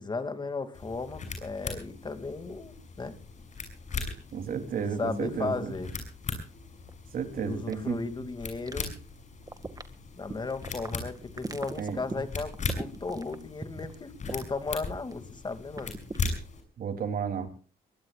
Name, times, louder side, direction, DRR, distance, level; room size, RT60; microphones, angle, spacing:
voice 1, 0.0-3.1 5.0-5.9 7.3-9.0 10.2-15.9, left 3 dB, 30° left, 9 dB, 2.6 m, -35 dB
sound 1, 0.7-16.6, left 4 dB, 50° left, 6.3 m, -39 dB
sound 2, 3.4-4.4 4.6-4.7 5.2-5.9 6.4-6.5 6.9-7.0 7.7-8.2 8.7-9.2 9.4-15.1 15.4-16.2, right 3 dB, 25° right, 2.1 m, -40 dB
voice 2, 4.3-5.7 7.1-8.0 11.8-12.0 16.8-17.5, right 6 dB, 65° right, 7 dB, 3.5 m, -32 dB
23.0 x 20.5 x 2.5 m, 0.38 s
cardioid pair, 90°, 16 cm